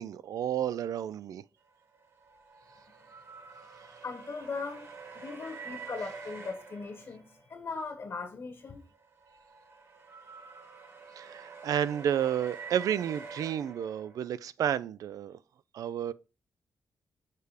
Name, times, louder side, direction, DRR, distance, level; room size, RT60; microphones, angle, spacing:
voice 1, 0.0-1.4 11.2-15.4 15.7-16.1, right 9 dB, 75° right, 0.3 m, -31 dB
sound 1, 1.9-7.6 8.9-14.3, right 5 dB, 50° right, 1.9 m, -47 dB
voice 2, 4.0-4.9 5.1-8.8, left 4 dB, 50° left, 1.2 m, -39 dB
6.7 x 3.4 x 4.9 m
cardioid pair, 100°, 6 cm